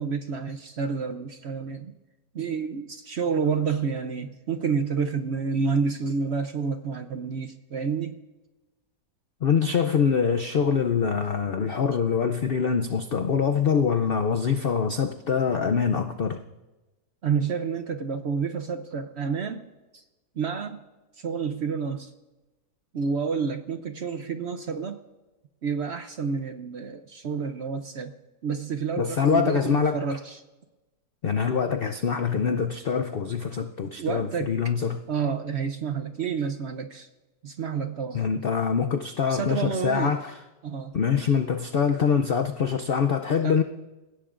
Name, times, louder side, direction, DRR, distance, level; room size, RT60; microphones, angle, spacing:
voice 1, 0.0-1.9 2.3-8.2 17.2-19.7 19.9-20.0 20.4-20.8 21.2-22.1 22.9-25.0 25.6-28.1 28.4-30.4 34.0-34.6 35.1-37.1 37.4-38.2 39.3-40.2 40.6-40.9 43.4-43.6, right 5 dB, 60° right, 8 dB, 0.7 m, -29 dB
voice 2, 9.4-16.4 29.0-30.0 31.2-35.0 38.1-40.3 40.9-43.6, left 6 dB, 90° left, 6 dB, 0.5 m, -24 dB
26.5 x 16.0 x 2.5 m, 1.1 s
omnidirectional pair, 1.8 m